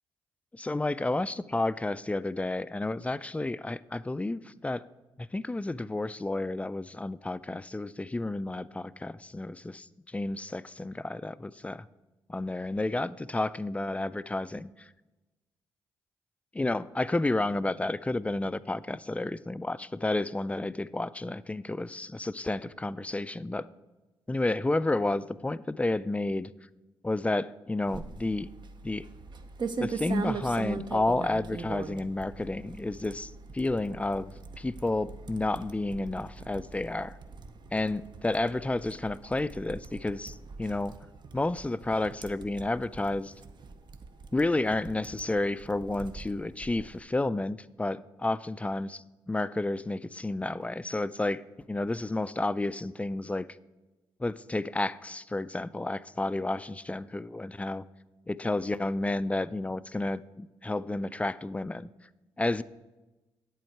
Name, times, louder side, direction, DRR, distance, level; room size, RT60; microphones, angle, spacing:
voice 1, 0.5-4.8 5.2-11.9 12.3-14.9 16.5-23.7 24.3-26.5 27.0-28.5 28.8-29.0 29.8-37.2 37.7-40.9 41.3-43.3 44.3-51.4 51.7-53.5 54.2-57.8 58.3-61.9 62.4-62.6, left 2 dB, 15° left, 16 dB, 0.3 m, -31 dB
sound 1, 27.9-47.0, right 4 dB, 50° right, 0.7 m, -41 dB
8.5 x 7.7 x 4.5 m, 1.1 s
supercardioid pair, 55°, 10 cm